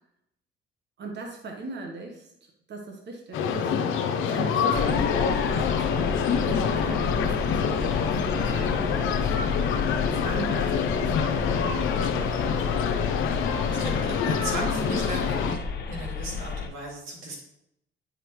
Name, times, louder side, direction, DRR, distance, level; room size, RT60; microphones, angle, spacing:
voice 1, 1.0-3.7 4.3-9.7 10.2-12.0, right 3 dB, 60° right, 2 dB, 1.2 m, -40 dB
sound 1, 3.3-15.6, left 6 dB, 85° left, 0.6 m, -26 dB
sound 2, 4.7-16.7, left 5 dB, 55° left, 1.1 m, -32 dB
voice 2, 13.7-15.6 15.9-17.4, right 1 dB, 90° right, -2 dB, 2.6 m, -36 dB
9.6 x 5.0 x 3.1 m, 0.76 s
cardioid pair, 90°, 20 cm